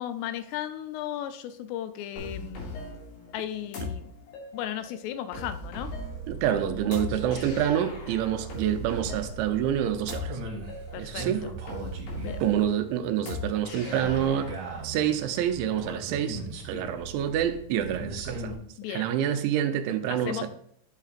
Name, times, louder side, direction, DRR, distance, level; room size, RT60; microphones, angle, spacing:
voice 1, 0.0-2.8 3.3-4.1 4.5-5.9 10.9-11.5 12.2-12.4 18.8-19.1 20.1-20.5, left 11 dB, 85° left, 2.5 m, -35 dB
sound 1, 2.2-14.8, left 3 dB, 70° left, 4.0 m, -39 dB
sound 2, 5.9-18.6, right 4 dB, 60° right, 2.1 m, -39 dB
voice 2, 6.3-10.4 11.0-11.4 12.4-14.5 14.8-18.6 18.9-20.5, right 10 dB, 80° right, 3.0 m, -27 dB
11.5 x 6.5 x 2.5 m
omnidirectional pair, 5.3 m